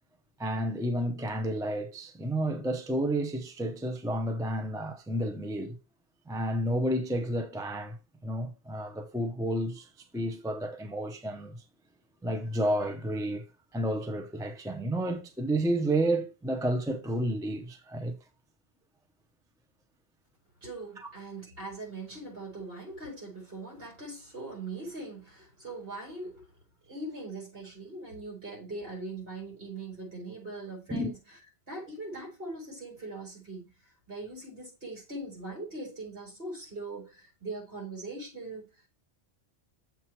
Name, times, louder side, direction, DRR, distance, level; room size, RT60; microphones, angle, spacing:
voice 1, 0.4-5.8 6.3-8.0 8.2-11.6 12.2-13.4 13.7-18.2 21.0-21.1 30.9-31.1, right 1 dB, 5° right, 0.5 m, -31 dB
voice 2, 20.6-26.5 26.9-31.2 31.7-33.7 34.1-38.7, right 2 dB, 60° right, 4.3 m, -41 dB
7.2 x 3.2 x 5.8 m
omnidirectional pair, 1.1 m